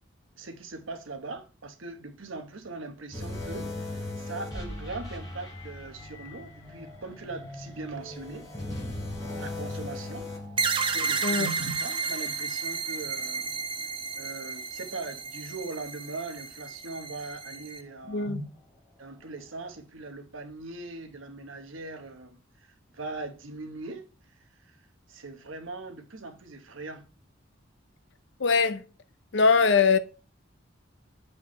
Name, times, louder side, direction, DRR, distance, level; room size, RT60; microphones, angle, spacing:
voice 1, 0.4-8.5 9.4-10.3 10.9-13.5 14.2-18.4 19.0-24.1 24.6-24.7 25.1-27.0, right 3 dB, 80° right, 1.1 m, -40 dB
sound 1, 3.1-14.6 14.9-15.1 15.8-15.9, left 2 dB, 20° left, 3.9 m, -40 dB
sound 2, 10.6-17.8, right 5 dB, 25° right, 0.6 m, -32 dB
voice 2, 18.1-18.4 28.4-28.8 29.3-30.0, left 5 dB, 65° left, 0.6 m, -21 dB
7.4 x 4.7 x 3.2 m
head